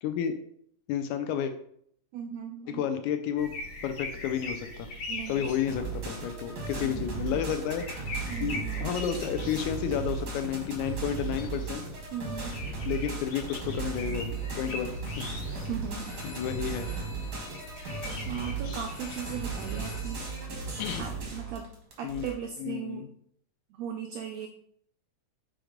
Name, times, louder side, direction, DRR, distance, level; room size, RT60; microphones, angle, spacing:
voice 1, 0.0-0.3 0.9-1.5 2.7-3.5 3.8-4.9 5.3-8.1 8.4-11.8 12.9-15.3 16.2-16.9 20.8-21.0 22.0-22.3 22.6-23.1, left 9 dB, 80° left, 8 dB, 1.8 m, -31 dB
voice 2, 2.1-2.8 5.1-5.8 6.8-7.5 8.3-9.0 12.1-12.6 15.7-16.2 18.2-20.3 21.0-21.7 22.0-23.1 23.7-24.5, right 8 dB, 85° right, 4 dB, 1.5 m, -38 dB
sound 1, 3.4-20.0, left 1 dB, 65° left, 1.3 m, -42 dB
sound 2, 5.7-22.3, right 4 dB, 60° right, 1.0 m, -36 dB
sound 3, 14.3-20.4, left 1 dB, 35° left, 0.4 m, -49 dB
6.3 x 3.0 x 5.0 m, 0.67 s
omnidirectional pair, 3.6 m